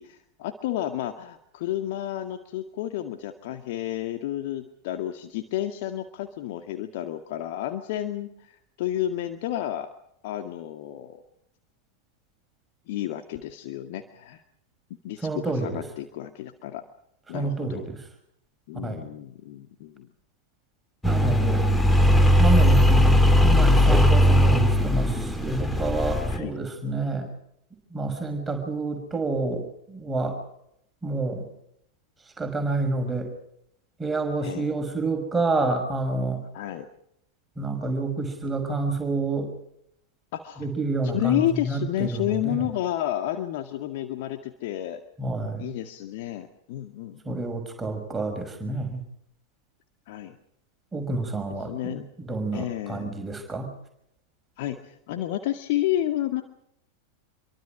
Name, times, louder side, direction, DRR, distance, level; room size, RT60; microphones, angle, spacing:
voice 1, 0.0-9.9 10.2-11.2 12.9-14.4 15.0-16.8 17.3-17.8 18.7-20.1 26.3-26.5 34.4-34.7 36.5-36.9 40.3-40.7 41.1-45.0 45.6-47.6 50.1-50.4 51.7-52.1 52.5-53.1 54.6-56.4, left 13 dB, 50° left, 7 dB, 2.0 m, -31 dB
voice 2, 15.2-15.8 17.3-18.0 18.8-19.0 21.0-21.6 22.4-27.3 27.9-30.4 31.0-31.5 32.4-33.3 34.0-36.4 37.6-39.5 40.6-42.6 45.2-45.7 47.3-49.0 50.9-53.7, right 2 dB, 10° right, 4 dB, 5.8 m, -28 dB
sound 1, 21.0-26.4, left 1 dB, 5° left, 2.9 m, -19 dB
27.5 x 24.0 x 5.0 m, 0.73 s
figure-of-eight pair, 90°, 0 cm